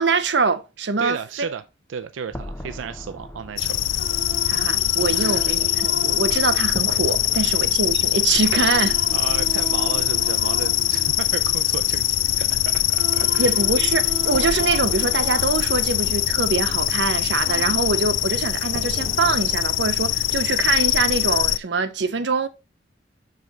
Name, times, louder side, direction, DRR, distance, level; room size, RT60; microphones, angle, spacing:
voice 1, 0.0-1.2 4.5-9.0 13.4-22.5, right 4 dB, 65° right, 0.7 m, -23 dB
voice 2, 1.0-1.6 1.9-3.8 5.1-5.5 7.3-7.6 9.1-13.5, right 7 dB, 90° right, 0.4 m, -33 dB
sound 1, 2.3-10.1 10.4-10.5 14.3-19.7, left 1 dB, 10° left, 0.6 m, -41 dB
sound 2, 3.6-21.6, left 13 dB, 80° left, 0.4 m, -22 dB
sound 3, 3.9-7.8 8.4-12.4 12.7-16.9 17.4-18.9, equal, 10° right, 3.9 m, -37 dB
5.8 x 5.1 x 4.0 m
head